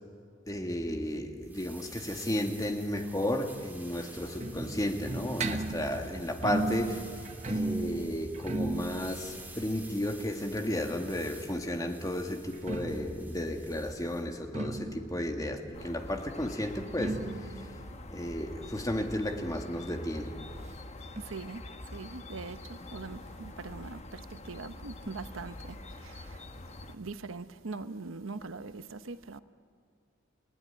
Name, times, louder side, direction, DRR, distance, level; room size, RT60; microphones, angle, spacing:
voice 1, 0.5-17.7 18.1-20.4, left 1 dB, 15° left, 1.7 m, -33 dB
sound 1, 1.4-14.3, right 2 dB, 10° right, 2.7 m, -51 dB
sound 2, 3.6-11.3 12.4-19.8 20.0-20.1 20.4-20.5 21.2-21.3, right 2 dB, 35° right, 1.1 m, -37 dB
sound 3, 15.7-27.0, left 2 dB, 35° left, 1.1 m, -45 dB
voice 2, 21.2-26.4 26.9-29.4, right 3 dB, 85° right, 0.9 m, -42 dB
29.5 x 17.0 x 9.9 m
head